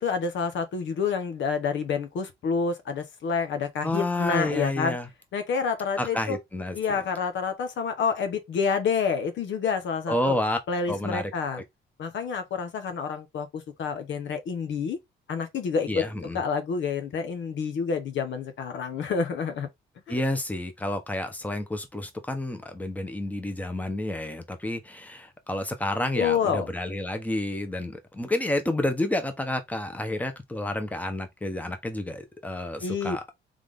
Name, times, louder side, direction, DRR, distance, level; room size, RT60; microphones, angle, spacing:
voice 1, 0.0-5.0 5.3-6.4 6.7-10.4 10.7-11.6 12.0-15.0 15.3-16.1 16.3-19.7 20.1-20.2 26.1-26.7 32.8-33.2, left 5 dB, 70° left, 1.1 m, -28 dB
voice 2, 3.8-5.1 6.0-7.0 10.1-10.6 10.9-11.6 15.9-16.4 20.1-33.4, left 1 dB, 5° left, 1.1 m, -30 dB
3.7 x 3.4 x 3.6 m
cardioid pair, 90°, 20 cm